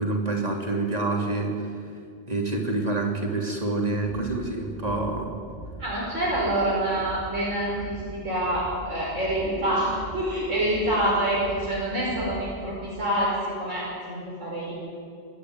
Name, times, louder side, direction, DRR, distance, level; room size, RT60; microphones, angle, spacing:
voice 1, 0.0-1.7 2.3-5.4, right 2 dB, 30° right, 1 dB, 3.4 m, -27 dB
sound 1, 4.0-4.4 4.8-5.1 5.5-5.9 6.2-6.6 7.0-7.3 7.7-8.1 8.4-8.8 9.1-9.5 9.9-10.3 10.6-11.0 11.3-11.7 12.1-12.5, right 1 dB, 65° left, 5.5 m, -40 dB
voice 2, 5.8-14.7, right 1 dB, 85° right, -7 dB, 5.7 m, -26 dB
27.0 x 11.0 x 9.5 m, 2.3 s
omnidirectional pair, 1.3 m